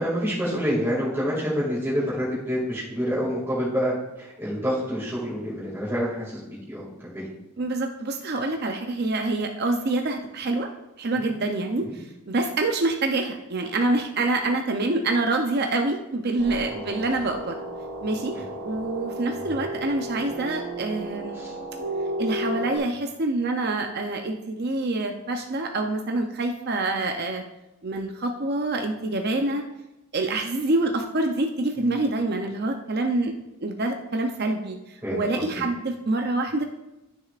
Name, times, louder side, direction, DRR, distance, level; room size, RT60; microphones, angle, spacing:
voice 1, 0.0-7.3 11.2-11.3 11.8-12.0 16.7-16.9 21.3-21.5 31.8-32.0 35.0-35.4, equal, 10° right, -8 dB, 2.2 m, -28 dB
voice 2, 7.6-10.7 11.0-17.6 18.0-18.3 18.6-21.4 22.2-27.4 27.8-29.6 30.1-33.3 33.6-36.6, right 2 dB, 45° right, 4 dB, 0.6 m, -26 dB
sound 1, 16.4-22.8, right 1 dB, 80° right, 3.0 m, -33 dB
12.5 x 6.5 x 2.5 m, 0.95 s
head